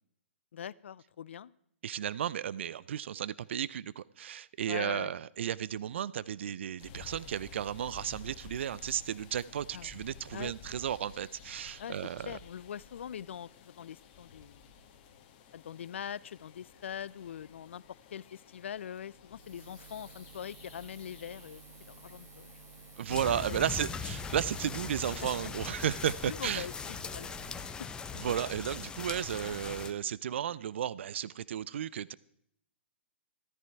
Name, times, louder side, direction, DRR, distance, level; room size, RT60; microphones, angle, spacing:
voice 1, 0.5-1.5 4.7-5.1 9.7-9.9 10.3-10.5 11.8-12.0 12.2-14.7 15.5-22.5 25.9-27.5 27.8-27.9, left 9 dB, 70° left, 21 dB, 0.5 m, -43 dB
voice 2, 1.8-12.3 23.0-26.7 28.1-32.1, right 9 dB, 65° right, 20 dB, 0.5 m, -34 dB
sound 1, 6.8-26.7, left 5 dB, 40° left, 1.9 m, -54 dB
Buzz, 19.3-27.7, right 5 dB, 25° right, 2.6 m, -53 dB
sound 2, 23.1-29.9, left 5 dB, 10° left, 0.8 m, -40 dB
14.5 x 13.5 x 4.6 m, 0.70 s
hypercardioid pair, 135°, 7 cm